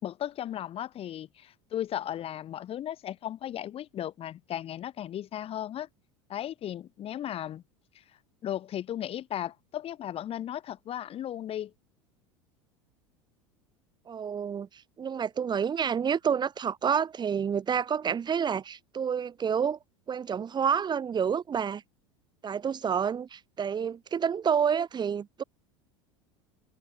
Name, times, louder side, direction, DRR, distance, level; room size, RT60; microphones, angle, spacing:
voice 1, 0.0-5.9 6.3-7.6 7.9-8.0 8.4-11.7, left 11 dB, 40° left, 6.8 m, -36 dB
voice 2, 14.1-14.7 15.0-19.8 20.1-21.8 22.4-25.4, right 7 dB, 30° right, 7.1 m, -29 dB
hypercardioid pair, 80°, 14 cm